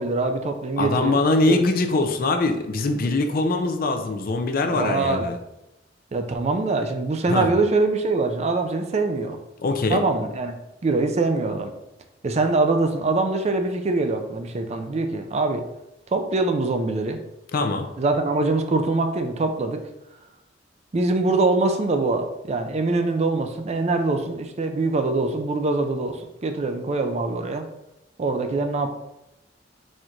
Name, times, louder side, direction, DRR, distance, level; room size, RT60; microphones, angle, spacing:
voice 1, 0.0-1.2 1.5-1.6 4.6-5.3 6.1-9.4 9.9-10.5 10.8-11.7 12.2-15.6 16.1-17.2 18.0-19.8 20.9-27.7 28.2-28.9, right 3 dB, 35° right, 6 dB, 0.4 m, -23 dB
voice 2, 0.8-5.3 7.3-7.5 9.6-10.0 17.5-17.9, left 2 dB, 50° left, 6 dB, 0.5 m, -22 dB
4.2 x 2.5 x 4.4 m, 0.90 s
head